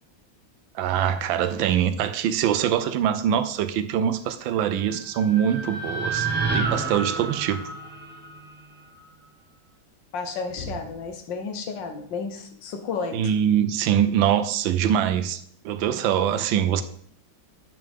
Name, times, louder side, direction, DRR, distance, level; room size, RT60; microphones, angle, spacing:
voice 1, 0.7-6.3 6.5-7.6 13.1-15.4 15.6-16.8, right 9 dB, 85° right, 12 dB, 1.4 m, -23 dB
sound 1, 4.8-9.0, right 4 dB, 5° right, 0.9 m, -30 dB
voice 2, 10.1-13.2, left 4 dB, 75° left, 6 dB, 1.6 m, -32 dB
8.8 x 6.7 x 3.5 m, 0.64 s
omnidirectional pair, 2.0 m